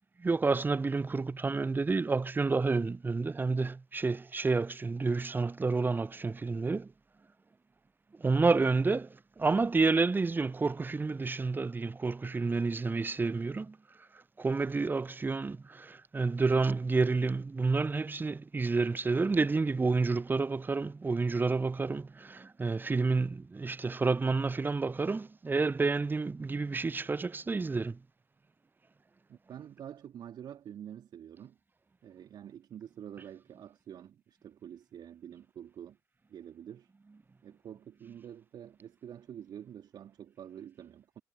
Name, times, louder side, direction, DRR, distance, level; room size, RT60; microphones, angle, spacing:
voice 1, 0.2-6.9 8.2-13.8 14.4-28.0, right 3 dB, 20° right, 0.8 m, -29 dB
voice 2, 29.3-31.6 32.0-36.0 36.3-36.9 37.4-41.2, right 9 dB, 50° right, 3.3 m, -47 dB
figure-of-eight pair, 45°, 10 cm